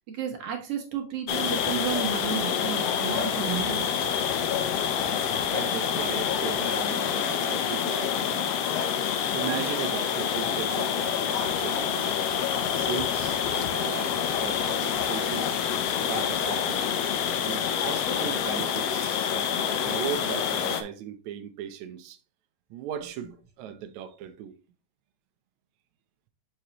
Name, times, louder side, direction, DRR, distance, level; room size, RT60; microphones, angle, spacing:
voice 1, 0.0-3.9, right 8 dB, 55° right, 2.0 m, -32 dB
sound 1, 1.3-20.8, left 8 dB, 75° left, 1.4 m, -27 dB
voice 2, 5.5-8.5 9.3-12.2 12.7-15.6 16.1-16.9 17.5-22.2 22.7-23.3 23.6-24.5, right 9 dB, 75° right, 1.9 m, -37 dB
6.4 x 5.6 x 3.0 m
omnidirectional pair, 3.7 m